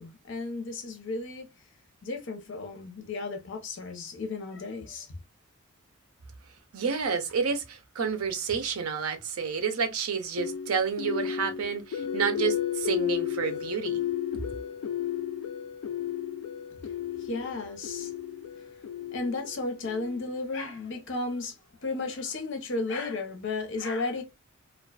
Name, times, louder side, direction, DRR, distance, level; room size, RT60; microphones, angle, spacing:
voice 1, 0.0-1.5 2.0-5.1 17.2-18.1 19.1-21.5 21.8-24.2, left 3 dB, 60° left, 0.7 m, -34 dB
voice 2, 6.7-14.0, right 6 dB, 90° right, 0.6 m, -29 dB
sound 1, 10.4-20.5, left 9 dB, 75° left, 0.3 m, -33 dB
2.4 x 2.2 x 2.3 m
head